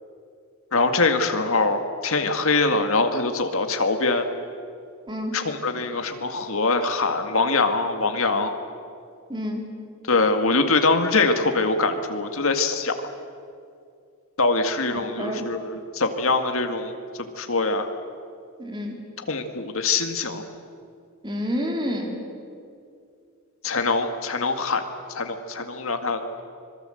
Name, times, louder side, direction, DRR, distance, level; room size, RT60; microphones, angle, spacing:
voice 1, 0.7-4.2 5.3-8.5 10.1-13.1 14.4-16.9 17.2-17.9 19.3-20.4 23.6-24.8 25.1-26.4, left 3 dB, 70° left, 6 dB, 2.0 m, -23 dB
voice 2, 9.3-9.7 14.9-15.5 18.6-18.9 21.2-22.2, equal, 20° right, 1 dB, 3.6 m, -29 dB
25.5 x 22.5 x 7.9 m, 2.4 s
head